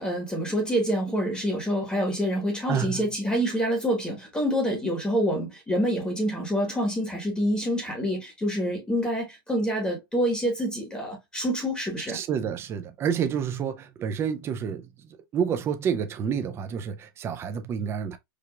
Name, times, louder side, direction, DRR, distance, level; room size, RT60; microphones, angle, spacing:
voice 1, 0.0-12.2, equal, 5° left, 1.1 m, -27 dB
voice 2, 2.7-3.1 12.1-14.9 15.3-18.2, right 7 dB, 20° right, 0.4 m, -29 dB
4.8 x 2.4 x 2.2 m
supercardioid pair, 145°, 13 cm